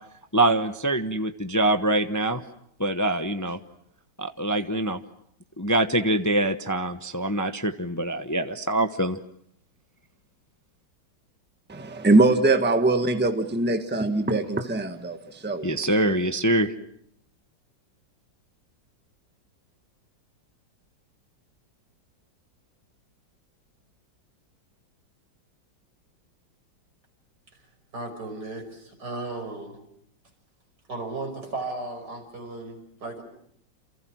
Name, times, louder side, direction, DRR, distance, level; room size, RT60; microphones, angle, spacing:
voice 1, 0.3-2.4 2.8-3.6 4.2-5.0 5.6-9.2 15.6-16.7, right 1 dB, 15° left, 0.6 m, -24 dB
voice 2, 11.7-15.7 16.0-16.2, right 2 dB, 5° right, 1.4 m, -22 dB
voice 3, 27.9-29.9 30.9-33.2, right 2 dB, 60° right, 6.6 m, -35 dB
28.5 x 28.5 x 6.2 m
omnidirectional pair, 2.0 m